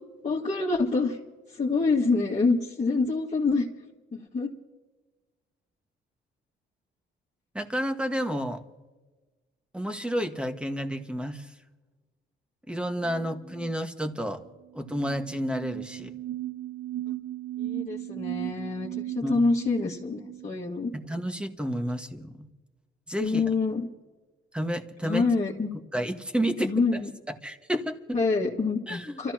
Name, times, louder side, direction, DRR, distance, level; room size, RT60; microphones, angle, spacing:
voice 1, 0.2-1.2 1.5-4.5 13.1-13.2 13.6-13.7 17.6-20.9 23.2-23.9 25.0-25.7 26.6-27.1 28.1-29.3, left 3 dB, 35° left, -5 dB, 2.0 m, -26 dB
voice 2, 7.6-8.6 9.7-11.5 12.7-14.4 14.7-16.1 19.2-19.4 20.9-22.5 23.1-23.4 24.5-25.2 25.9-27.0 27.4-28.2 28.9-29.2, equal, 5° right, 5 dB, 1.6 m, -30 dB
sound 1, 14.4-14.5 14.8-20.5, right 14 dB, 80° right, 2.8 m, -36 dB
30.0 x 14.0 x 2.9 m, 1.2 s
cardioid pair, 90°, 20 cm